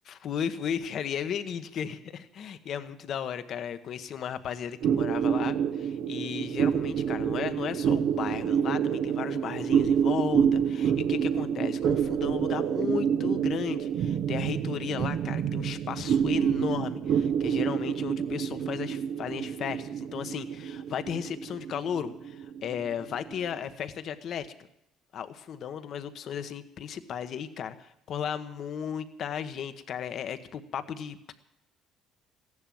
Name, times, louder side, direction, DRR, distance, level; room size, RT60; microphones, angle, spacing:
voice 1, 0.1-24.5 25.1-31.3, left 8 dB, 60° left, 10 dB, 1.2 m, -35 dB
sound 1, 4.8-23.6, right 8 dB, 65° right, 0.8 m, -28 dB
15.0 x 11.0 x 7.8 m, 0.84 s
supercardioid pair, 75°, 0 cm